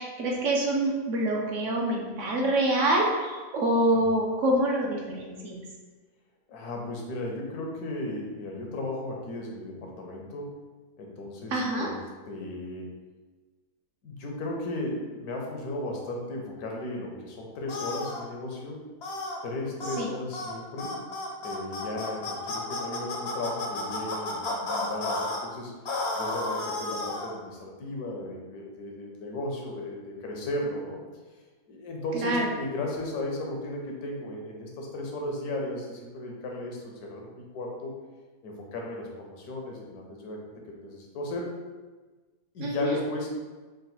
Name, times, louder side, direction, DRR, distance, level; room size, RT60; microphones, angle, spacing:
voice 1, 0.0-5.6 11.5-11.9 20.0-20.1 32.1-32.5 42.6-43.0, right 1 dB, 65° right, -1 dB, 0.9 m, -26 dB
voice 2, 6.5-10.6 11.0-11.9 12.2-12.9 14.0-18.8 19.4-21.0 21.4-25.7 26.1-31.0 31.7-37.9 38.4-41.5 42.5-43.4, left 1 dB, 85° left, -1 dB, 1.3 m, -35 dB
sound 1, 17.7-18.2 19.0-19.4 19.8-20.0 20.3-20.5 20.8-25.4 25.8-27.3, left 2 dB, 60° left, 0.7 m, -32 dB
3.9 x 2.2 x 4.1 m, 1.3 s
omnidirectional pair, 1.6 m